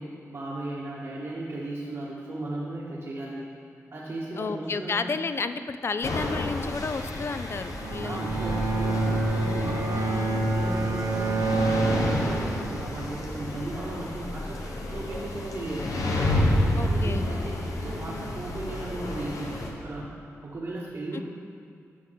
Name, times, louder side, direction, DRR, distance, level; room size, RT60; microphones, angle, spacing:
voice 1, 0.0-3.4 3.9-5.0 8.0-15.9 16.8-21.2, right 2 dB, 55° right, -7 dB, 1.1 m, -36 dB
voice 2, 4.4-8.2 9.9-10.5 16.7-17.3 21.1-21.2, left 4 dB, 50° left, 11 dB, 0.3 m, -32 dB
sound 1, 6.0-19.7, left 1 dB, 85° left, 0.9 m, -30 dB
Bowed string instrument, 7.7-13.0, right 2 dB, 75° right, 0.8 m, -27 dB
10.0 x 6.0 x 3.9 m, 2.4 s
cardioid pair, 80°, 6 cm